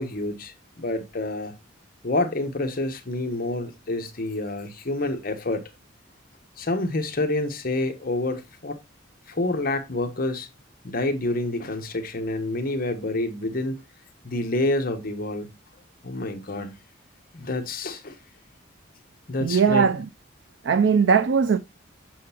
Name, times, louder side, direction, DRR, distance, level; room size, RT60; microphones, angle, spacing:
voice 1, 0.0-1.5 2.0-5.6 6.6-8.8 9.3-10.5 10.8-13.8 14.2-15.6 16.0-16.7 17.3-18.2 19.3-19.9, left 2 dB, 45° left, 1.1 m, -28 dB
voice 2, 19.4-20.1 20.6-21.6, right 6 dB, 65° right, 0.4 m, -19 dB
7.6 x 6.8 x 2.8 m
head